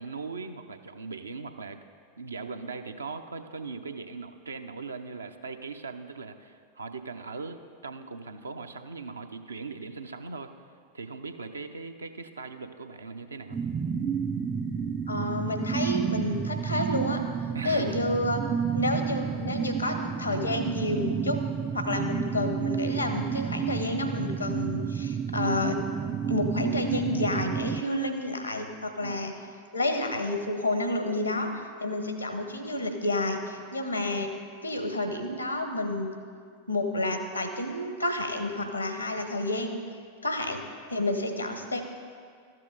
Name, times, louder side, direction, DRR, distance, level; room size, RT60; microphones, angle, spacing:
voice 1, 0.0-1.8 2.2-10.5 10.9-13.6 17.5-18.0 21.9-22.2 29.0-29.2, right 4 dB, 75° right, 7 dB, 0.5 m, -39 dB
sound 1, 13.5-27.8, right 7 dB, 20° right, 0.3 m, -30 dB
voice 2, 15.1-17.2 17.6-18.4 18.7-21.4 21.7-25.8 26.2-29.3 29.7-31.5 31.8-34.3 34.6-36.1 36.7-39.8 40.2-40.6 40.9-41.8, left 1 dB, 85° left, 6 dB, 1.0 m, -30 dB
13.5 x 7.5 x 3.9 m, 2.1 s
figure-of-eight pair, 90°, 0 cm